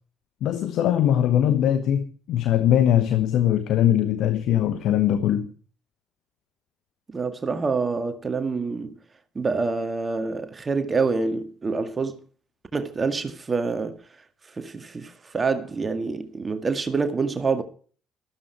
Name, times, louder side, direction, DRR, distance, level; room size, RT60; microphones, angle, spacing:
voice 1, 0.4-5.5, left 10 dB, 55° left, 1.2 m, -21 dB
voice 2, 7.1-9.0 9.4-12.2 12.7-14.0 14.4-17.6, right 4 dB, 30° right, 1.9 m, -26 dB
14.0 x 13.5 x 4.7 m
figure-of-eight pair, 50°, 0 cm